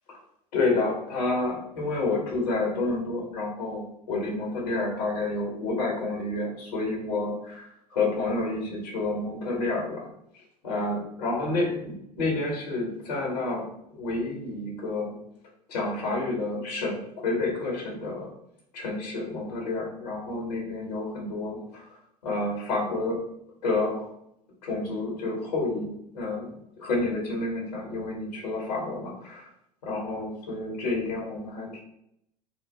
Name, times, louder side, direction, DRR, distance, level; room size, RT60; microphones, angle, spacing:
voice 1, 0.5-10.1 10.6-15.2 15.7-18.3 18.7-23.2 23.6-24.1 24.6-25.9 26.1-29.5 29.8-31.8, left 2 dB, 80° left, -2 dB, 1.3 m, -29 dB
5.0 x 2.2 x 4.0 m, 0.76 s
hypercardioid pair, 75°, 21 cm